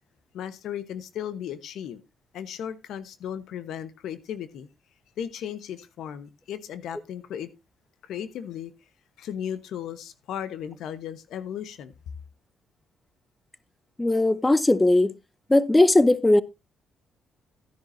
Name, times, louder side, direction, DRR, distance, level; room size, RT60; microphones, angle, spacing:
voice 1, 0.3-2.0 2.3-4.7 5.2-7.5 8.0-8.7 9.2-11.9, left 9 dB, 75° left, 1.1 m, -35 dB
voice 2, 14.0-15.1 15.5-16.4, left 2 dB, 15° left, 0.7 m, -18 dB
13.0 x 10.0 x 2.7 m
cardioid pair, 90°, 0 cm